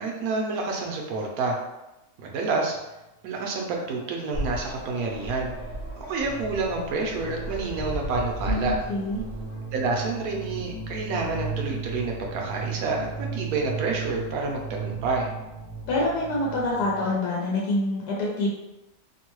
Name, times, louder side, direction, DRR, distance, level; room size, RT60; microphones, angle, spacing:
voice 1, 0.0-1.6 2.2-2.8 3.2-5.5 6.1-8.7 9.7-15.3, right 3 dB, 70° right, 0 dB, 0.9 m, -28 dB
sound 1, 3.9-4.0 4.3-17.2, right 5 dB, 45° right, 0.8 m, -37 dB
sound 2, 4.3-9.6, equal, 50° left, 0.8 m, -35 dB
voice 2, 8.4-9.2 15.9-18.5, left 2 dB, 75° left, -5 dB, 1.2 m, -26 dB
3.0 x 2.2 x 3.0 m, 0.97 s
omnidirectional pair, 1.8 m